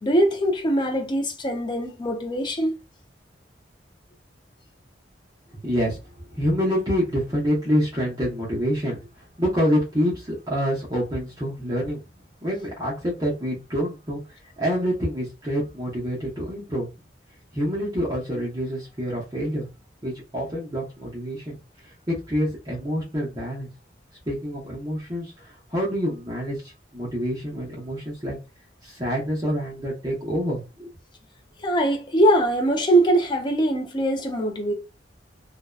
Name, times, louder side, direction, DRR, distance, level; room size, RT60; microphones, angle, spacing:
voice 1, 0.0-2.8 31.6-34.7, right 1 dB, 25° left, 0.4 m, -22 dB
voice 2, 5.6-12.0 12.4-14.2 14.6-16.9 17.5-19.7 20.0-21.6 21.8-23.7 24.3-28.4 28.8-30.9, equal, 20° right, 0.8 m, -27 dB
2.6 x 2.1 x 2.2 m
head